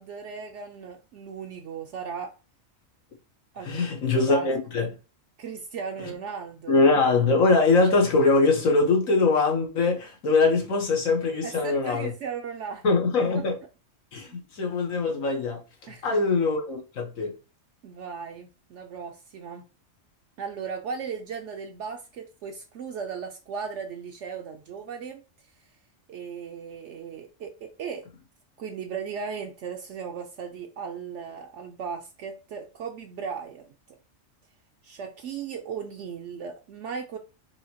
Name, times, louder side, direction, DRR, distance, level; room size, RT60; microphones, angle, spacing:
voice 1, 0.0-2.3 3.5-3.7 4.2-4.5 5.4-6.7 11.4-12.9 14.3-14.4 15.9-16.2 17.8-19.6 20.4-25.2 26.1-28.1 28.6-33.7 34.8-37.2, right 6 dB, 70° right, 0.9 m, -36 dB
voice 2, 3.6-4.9 6.7-12.1 12.8-13.6 14.1-15.6 16.0-17.4, left 3 dB, 90° left, 1.6 m, -22 dB
4.8 x 2.9 x 2.8 m
omnidirectional pair, 1.4 m